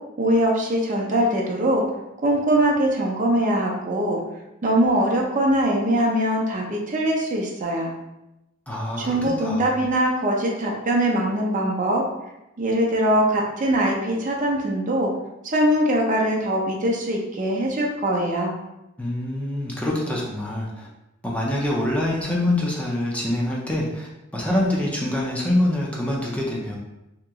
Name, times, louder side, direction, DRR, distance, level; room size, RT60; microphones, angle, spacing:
voice 1, 0.2-1.8 2.2-4.2 4.6-7.9 9.0-12.0 12.6-15.1 15.4-18.5, right 1 dB, 40° right, -1 dB, 0.6 m, -22 dB
voice 2, 8.7-9.8 19.0-20.9 21.2-24.1 24.3-26.8, left 1 dB, 5° left, -4 dB, 0.5 m, -25 dB
2.9 x 2.9 x 3.5 m, 0.92 s
head